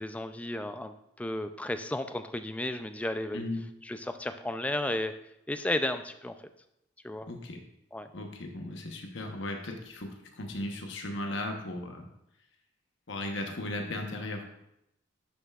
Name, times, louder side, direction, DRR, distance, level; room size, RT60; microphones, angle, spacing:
voice 1, 0.0-3.5 3.9-5.2 5.5-6.3 7.0-7.3 7.9-8.1, left 1 dB, 5° left, 9 dB, 0.3 m, -33 dB
voice 2, 3.3-3.6 7.3-7.6 8.1-12.1 13.1-14.5, left 1 dB, 65° left, 3 dB, 1.0 m, -36 dB
11.0 x 5.6 x 2.4 m, 0.81 s
head